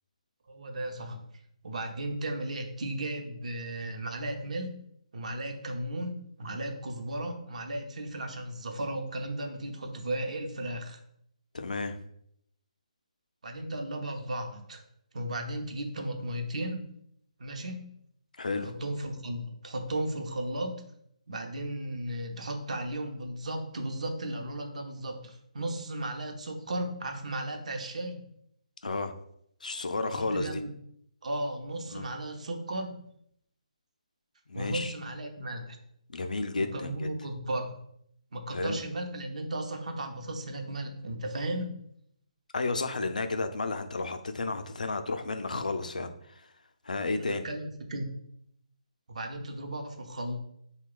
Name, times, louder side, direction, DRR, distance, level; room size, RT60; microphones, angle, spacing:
voice 1, 0.5-1.2 1.6-4.8 5.1-11.0 13.4-14.8 15.1-16.9 17.4-17.9 18.6-20.8 21.3-28.2 30.1-30.7 31.2-33.0 34.5-35.8 36.6-37.7 38.3-41.8 46.9-48.0 49.1-50.5, right 1 dB, 60° right, 4 dB, 0.7 m, -35 dB
voice 2, 11.5-12.0 18.4-18.7 28.8-29.1 29.6-30.6 31.9-32.1 34.5-34.9 36.1-37.1 38.5-38.8 42.5-46.4 46.8-47.5, left 3 dB, 85° left, 7 dB, 0.4 m, -32 dB
2.9 x 2.2 x 3.7 m, 0.71 s
hypercardioid pair, 155°, 4 cm